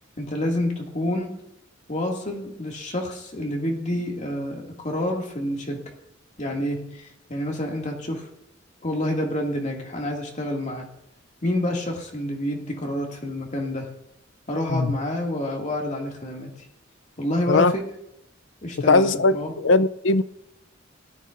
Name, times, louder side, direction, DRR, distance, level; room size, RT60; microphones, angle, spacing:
voice 1, 0.2-1.4 1.9-5.8 6.4-8.3 8.8-10.9 11.4-13.9 14.5-16.5 17.2-17.9 18.6-19.5, left 1 dB, 40° left, 2.3 m, -28 dB
voice 2, 18.9-20.2, left 3 dB, 65° left, 0.6 m, -19 dB
18.5 x 13.0 x 2.6 m
head